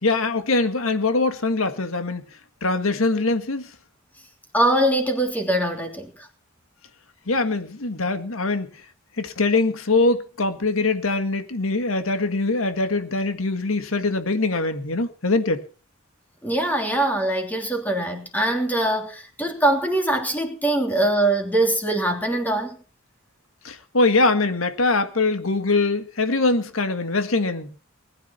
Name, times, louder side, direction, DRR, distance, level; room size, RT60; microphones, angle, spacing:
voice 1, 0.0-2.2 2.6-3.7 7.3-8.7 9.2-15.6 23.6-27.8, left 3 dB, 75° left, 1.8 m, -22 dB
voice 2, 4.5-6.3 16.4-22.8, right 1 dB, 10° left, 3.2 m, -22 dB
20.0 x 9.9 x 5.8 m
head